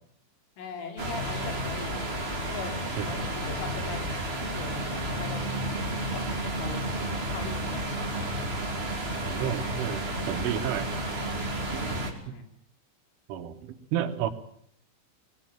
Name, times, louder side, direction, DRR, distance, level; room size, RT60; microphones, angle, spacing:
voice 1, 0.6-5.5 6.1-8.6 11.4-12.5, left 5 dB, 85° left, 6 dB, 5.9 m, -41 dB
sound 1, 1.0-12.1, right 1 dB, 20° right, 1.9 m, -32 dB
voice 2, 9.3-10.9 11.7-11.9 12.3-12.4 13.3-14.3, right 10 dB, 90° right, 8 dB, 4.1 m, -31 dB
23.0 x 18.5 x 9.0 m, 0.65 s
omnidirectional pair, 5.5 m